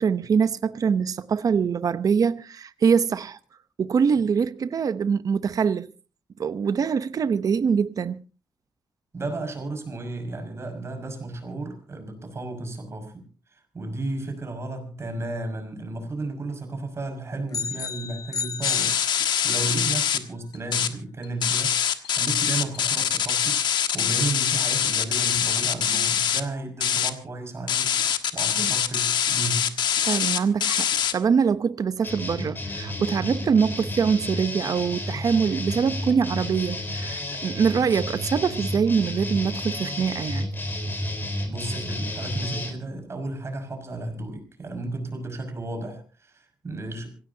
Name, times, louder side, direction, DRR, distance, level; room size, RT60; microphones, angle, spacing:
voice 1, 0.0-3.4 3.8-5.9 6.4-8.2 28.6-28.7 30.0-40.5, right 6 dB, 50° right, 0.8 m, -24 dB
voice 2, 9.1-13.2 13.5-23.6 23.9-28.0 28.3-29.8 41.5-47.1, right 2 dB, 35° right, 5.8 m, -33 dB
sound 1, 17.5-19.7, left 6 dB, 55° left, 0.8 m, -33 dB
sound 2, 18.6-20.2 20.5-20.9 21.2-26.4 26.8-27.1 27.7-31.1, left 8 dB, 85° left, 1.5 m, -24 dB
sound 3, 32.0-42.7, left 1 dB, 25° left, 4.3 m, -31 dB
26.5 x 16.5 x 2.8 m
wide cardioid pair, 115°, 8 cm